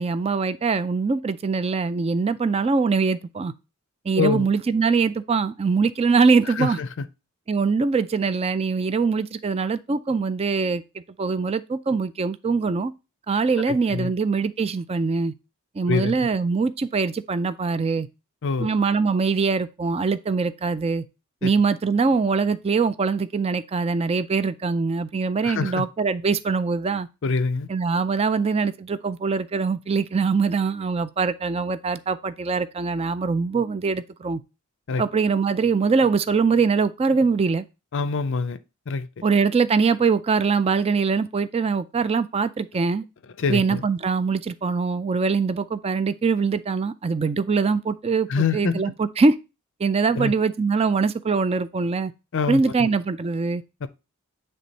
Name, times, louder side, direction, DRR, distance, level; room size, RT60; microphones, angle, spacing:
voice 1, 0.0-3.5 4.1-6.8 7.5-12.9 13.3-15.3 15.8-18.1 18.6-21.0 21.4-27.1 27.7-34.4 35.0-37.6 39.2-43.0 43.5-49.4 49.8-52.1 52.5-53.6, right 4 dB, 25° right, 0.4 m, -23 dB
voice 2, 4.2-4.5 6.6-6.9 13.7-14.1 15.9-16.3 18.4-18.7 21.4-21.5 25.4-25.9 27.2-27.7 34.9-35.0 37.9-38.6 38.9-39.1 43.4-43.8 48.3-48.8 50.2-50.3 52.3-52.9 53.8-53.9, left 4 dB, 60° left, 0.5 m, -25 dB
9.1 x 3.4 x 4.0 m
head